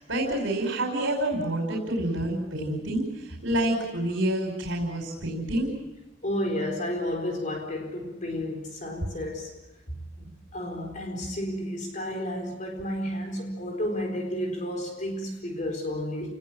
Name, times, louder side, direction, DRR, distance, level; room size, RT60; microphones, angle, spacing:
voice 1, 0.0-5.7, right 1 dB, 65° right, 5.4 m, -28 dB
voice 2, 6.2-9.6 9.9-16.3, left 1 dB, 40° left, 4.4 m, -32 dB
29.5 x 20.0 x 7.5 m
head